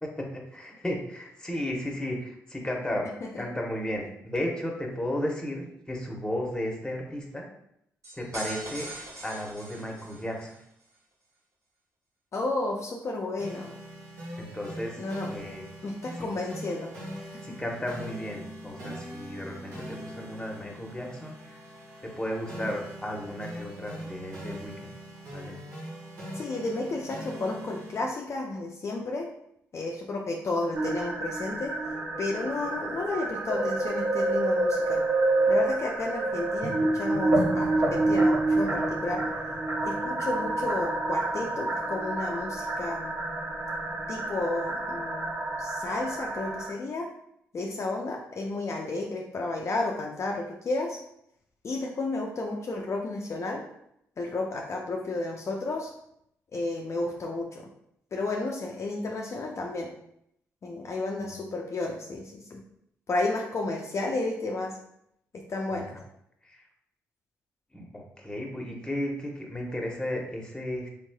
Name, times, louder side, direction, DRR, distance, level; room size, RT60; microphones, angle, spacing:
voice 1, 0.0-3.1 3.4-7.4 8.1-8.9 9.2-10.6 14.4-15.6 16.2-16.3 17.4-21.6 22.0-24.9 25.3-25.6 61.2-61.3 65.7-65.8 66.4-66.7 67.7-70.9, left 1 dB, 10° left, 0 dB, 0.9 m, -34 dB
sound 1, 8.0-10.6, right 2 dB, 55° right, 1.2 m, -41 dB
voice 2, 12.3-13.7 15.0-15.3 15.8-16.9 17.2-17.4 26.3-29.3 29.7-31.7 32.2-35.0 35.5-39.2 39.8-43.2 44.1-47.1 47.5-51.0 51.6-53.6 54.2-55.9 56.5-57.7 58.1-59.9 60.6-62.6 63.1-64.8 65.3-65.9, left 2 dB, 50° left, 0 dB, 0.5 m, -32 dB
sound 2, 13.4-28.0, equal, 75° right, 1.2 m, -42 dB
sound 3, 30.7-46.7, right 2 dB, 40° right, 0.7 m, -28 dB
3.5 x 3.1 x 2.3 m, 0.75 s
supercardioid pair, 50°, 6 cm